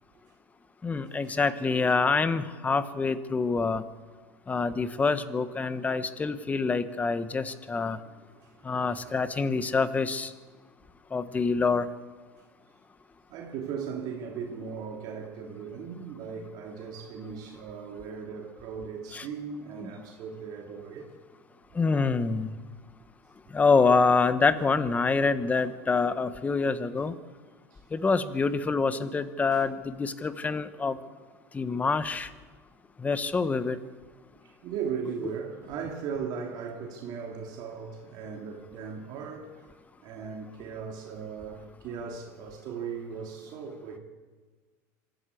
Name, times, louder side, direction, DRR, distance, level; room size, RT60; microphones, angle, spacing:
voice 1, 0.8-3.8 4.5-8.0 8.6-10.3 11.1-11.9 19.1-19.2 19.8-19.9 21.7-22.5 23.5-27.1 27.9-31.0 31.5-32.3 33.0-33.8, left 4 dB, 15° left, 1.3 m, -26 dB
voice 2, 7.8-8.1 8.6-9.4 13.3-21.1 29.5-29.6 34.6-39.6 40.0-44.0, right 6 dB, 55° right, 3.0 m, -38 dB
25.5 x 13.5 x 8.5 m
supercardioid pair, 115°, 9 cm